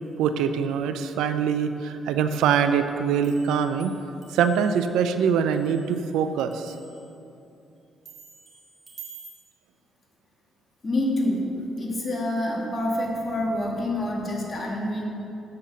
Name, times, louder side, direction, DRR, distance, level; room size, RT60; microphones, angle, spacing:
voice 1, 0.2-3.9 4.3-6.7, right 7 dB, 90° right, 9 dB, 0.4 m, -23 dB
sound 1, 2.9-6.2 6.5-7.2 8.0-9.4, right 5 dB, 40° right, 2.3 m, -48 dB
voice 2, 10.8-11.4 11.8-15.0, left 1 dB, 35° left, -2 dB, 2.0 m, -27 dB
7.6 x 5.6 x 6.8 m, 2.8 s
cardioid pair, 90°, 0 cm